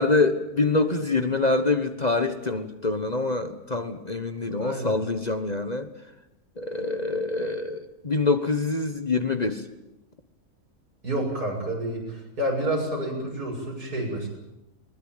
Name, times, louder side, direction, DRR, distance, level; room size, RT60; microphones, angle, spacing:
voice 1, 0.0-5.9 6.6-9.6, left 3 dB, 30° left, 8 dB, 1.3 m, -25 dB
voice 2, 4.6-4.9 11.0-14.3, right 1 dB, 80° right, 0 dB, 7.6 m, -29 dB
21.5 x 20.5 x 9.1 m, 0.91 s
omnidirectional pair, 1.6 m